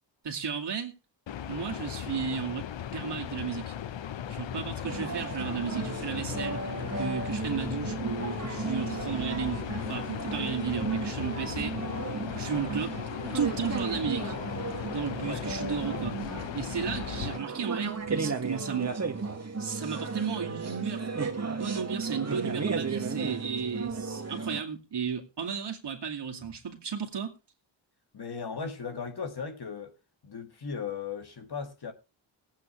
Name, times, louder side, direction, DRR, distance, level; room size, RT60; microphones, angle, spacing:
voice 1, 0.2-0.9 1.5-2.7 2.9-3.7 4.3-6.6 7.0-11.7 12.3-12.9 13.3-14.4 14.9-19.0 19.6-21.1 21.4-27.3, right 6 dB, 60° right, 2.4 m, -34 dB
sound 1, 1.3-17.4, left 9 dB, 75° left, 0.9 m, -37 dB
sound 2, 4.8-24.6, right 4 dB, 35° right, 1.8 m, -35 dB
voice 2, 28.1-29.9 30.2-31.9, left 6 dB, 55° left, 2.0 m, -37 dB
20.0 x 8.6 x 3.2 m
wide cardioid pair, 90°, 46 cm